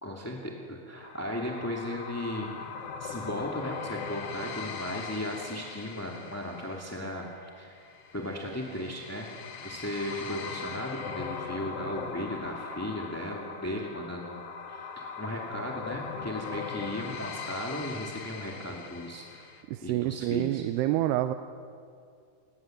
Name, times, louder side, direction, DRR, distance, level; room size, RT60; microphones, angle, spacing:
voice 1, 0.0-2.5 3.0-7.8 8.1-9.3 9.6-19.5 19.8-20.6, left 1 dB, 5° left, -1 dB, 1.3 m, -36 dB
sound 1, 0.9-19.6, left 6 dB, 55° left, 1.9 m, -40 dB
voice 2, 19.7-21.3, right 14 dB, 85° right, 10 dB, 2.8 m, -27 dB
28.5 x 20.0 x 7.8 m, 2.4 s
omnidirectional pair, 4.6 m